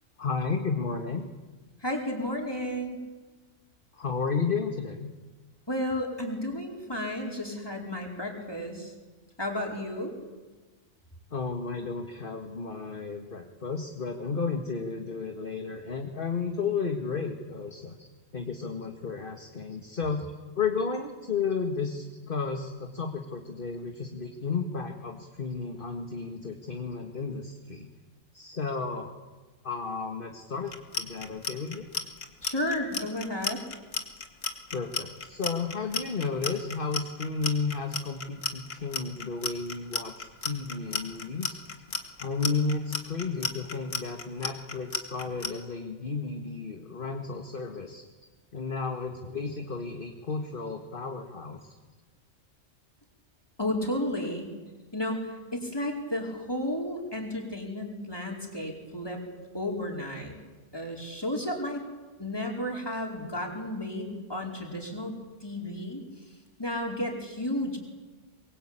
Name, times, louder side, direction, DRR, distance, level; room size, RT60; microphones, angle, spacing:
voice 1, 0.2-1.3 3.9-5.1 11.3-18.0 18.3-20.2 20.6-27.9 28.3-29.1 29.6-31.9 34.7-41.6 42.2-48.0 48.5-51.6, left 5 dB, 45° left, 3 dB, 1.9 m, -33 dB
voice 2, 1.8-3.0 5.7-8.9 9.4-10.1 18.0-18.1 32.4-33.6 53.6-54.6 54.9-59.2 59.5-60.4 60.7-61.8 62.2-65.1 65.4-66.0 66.6-67.8, left 1 dB, 20° left, 0 dB, 4.8 m, -32 dB
Clock, 30.7-45.5, left 4 dB, 75° left, 2.4 m, -33 dB
24.5 x 22.0 x 8.9 m, 1.3 s
omnidirectional pair, 1.3 m